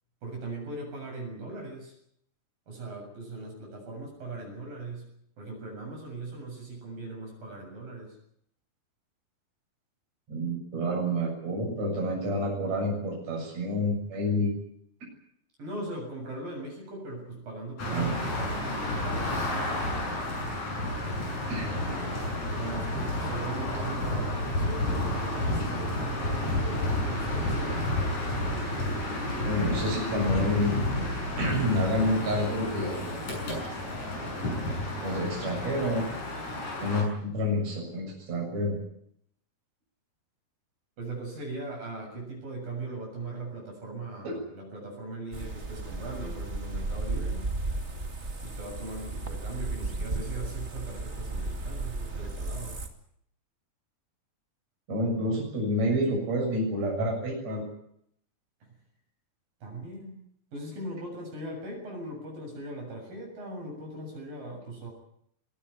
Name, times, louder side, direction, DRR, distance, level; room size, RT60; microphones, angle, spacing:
voice 1, 0.2-1.9 2.7-5.1 5.4-8.2 15.6-19.5 22.5-28.0 41.0-47.5 48.4-52.8 59.6-60.2 60.5-64.9, right 2 dB, 60° right, 0 dB, 9.1 m, -39 dB
voice 2, 10.3-14.5 17.9-18.3 21.5-21.6 29.4-31.0 31.4-33.3 35.0-36.0 36.8-38.8 44.2-44.4 54.9-57.6, equal, 45° right, -1 dB, 8.4 m, -28 dB
sound 1, 17.8-37.0, left 1 dB, 45° left, 8.5 m, -31 dB
sound 2, 45.3-52.9, right 2 dB, 25° right, 1.8 m, -34 dB
22.0 x 18.0 x 10.0 m, 0.71 s
omnidirectional pair, 4.5 m